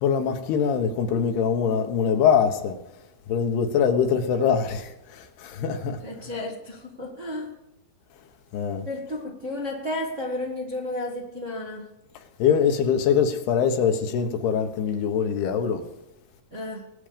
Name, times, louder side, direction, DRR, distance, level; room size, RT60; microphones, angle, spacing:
voice 1, 0.0-2.8 3.3-6.0 8.5-8.9 12.4-15.8, left 7 dB, 85° left, 3.3 m, -23 dB
voice 2, 6.0-7.5 8.8-11.9 16.5-16.8, left 1 dB, 30° right, 1.3 m, -32 dB
20.5 x 8.8 x 5.2 m
omnidirectional pair, 4.5 m